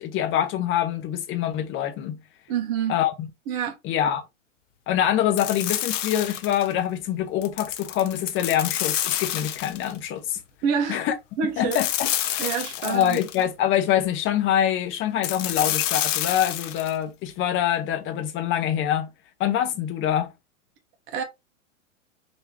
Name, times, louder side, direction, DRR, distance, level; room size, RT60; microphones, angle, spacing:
voice 1, 0.0-2.2 2.9-3.3 3.8-4.2 4.9-10.4 10.9-11.1 11.6-12.1 12.8-19.1 19.4-20.3, left 10 dB, 30° left, 0.8 m, -25 dB
voice 2, 2.5-3.0 3.5-3.7 10.6-11.1 11.4-11.8 12.4-13.2 21.1-21.2, right 7 dB, 45° right, 1.3 m, -27 dB
sound 1, 5.4-6.7 7.4-10.0 11.7-13.4 15.2-16.9, left 12 dB, 65° left, 0.7 m, -28 dB
3.7 x 3.0 x 2.8 m
hypercardioid pair, 110°, 40 cm